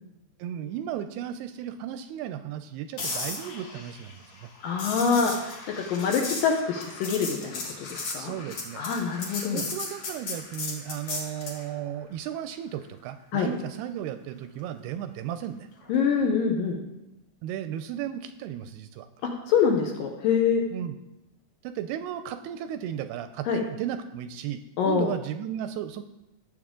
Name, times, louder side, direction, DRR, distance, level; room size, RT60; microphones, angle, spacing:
voice 1, 0.4-4.5 8.2-8.9 9.5-15.7 17.4-19.1 20.7-20.9 21.6-26.0, right 10 dB, 80° right, 10 dB, 2.4 m, -35 dB
sound 1, 3.0-11.6 15.8-16.0, left 3 dB, 50° left, 2.5 m, -36 dB
voice 2, 4.6-5.5 5.9-8.3 8.7-9.6 13.3-13.5 15.9-16.8 19.5-20.6 23.5-23.6 24.8-25.1, left 6 dB, 70° left, 2 dB, 2.2 m, -25 dB
18.0 x 7.7 x 3.7 m, 0.95 s
omnidirectional pair, 4.8 m